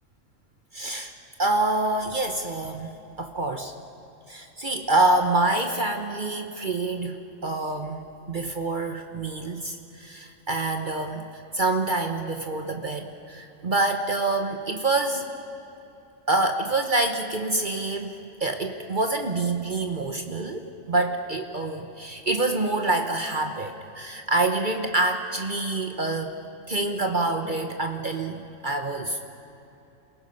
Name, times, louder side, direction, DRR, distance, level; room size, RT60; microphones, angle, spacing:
voice 1, 0.7-1.1 1.4-3.7 4.3-8.0 8.3-11.3 11.5-15.3 16.3-26.4 26.7-29.3, right 2 dB, 40° right, 5 dB, 1.1 m, -26 dB
27.5 x 18.0 x 5.4 m, 2.9 s
omnidirectional pair, 1.4 m